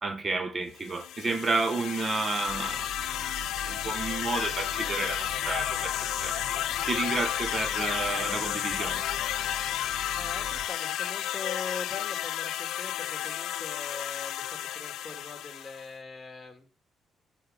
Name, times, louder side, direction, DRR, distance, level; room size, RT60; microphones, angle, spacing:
voice 1, 0.0-2.9 3.7-6.5 6.9-9.0, right 3 dB, 35° right, 1.1 m, -31 dB
sound 1, 0.8-15.9, left 12 dB, 85° left, 0.5 m, -32 dB
sound 2, 2.5-10.7, right 5 dB, 65° right, 1.9 m, -44 dB
voice 2, 10.1-14.4 14.7-16.7, left 4 dB, 20° left, 2.6 m, -42 dB
9.4 x 6.7 x 5.3 m
cardioid pair, 90°, 0 cm